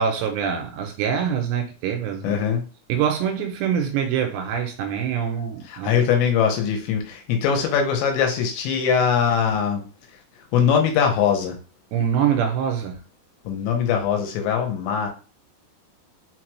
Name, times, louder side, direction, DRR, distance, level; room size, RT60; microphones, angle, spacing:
voice 1, 0.0-2.4 2.9-6.0 11.9-13.0, right 8 dB, 80° right, 2.7 m, -24 dB
voice 2, 2.2-2.6 5.7-9.8 10.5-11.6 13.5-15.1, left 7 dB, 85° left, 3.1 m, -21 dB
6.6 x 2.2 x 3.0 m
omnidirectional pair, 5.1 m